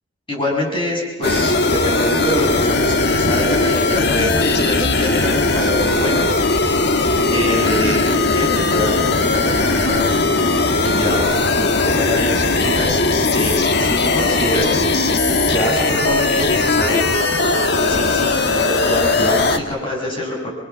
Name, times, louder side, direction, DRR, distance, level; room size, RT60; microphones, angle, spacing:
voice 1, 0.3-6.3 7.3-10.2 10.8-11.3 11.5-12.9 13.3-14.8 15.5-17.1 17.8-20.5, equal, 25° left, -2 dB, 7.0 m, -25 dB
sound 1, 1.2-19.6, left 3 dB, 55° left, 1.6 m, -18 dB
28.5 x 24.5 x 7.2 m, 1.2 s
head